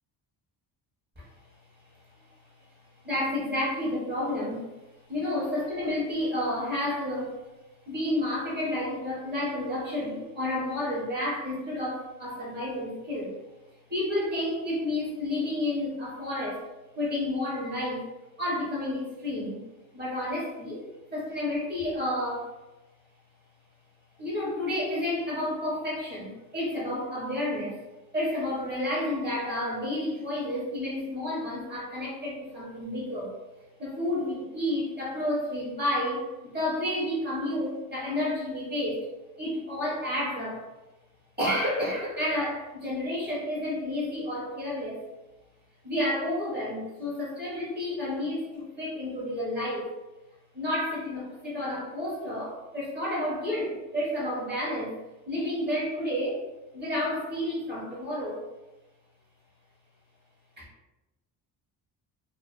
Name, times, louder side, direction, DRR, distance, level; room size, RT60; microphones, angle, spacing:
voice 1, 3.0-4.7 5.1-7.3 7.9-13.3 13.9-16.6 17.0-18.0 18.4-19.6 19.9-20.8 21.1-22.5 24.2-27.8 28.1-33.3 33.8-39.0 39.4-40.7 41.4-45.0 45.8-49.9 50.5-55.0 55.3-56.4 56.7-58.4 60.6-60.7, left 1 dB, 25° right, -7 dB, 1.1 m, -30 dB
2.5 x 2.3 x 2.4 m, 1.0 s
cardioid pair, 115°, 41 cm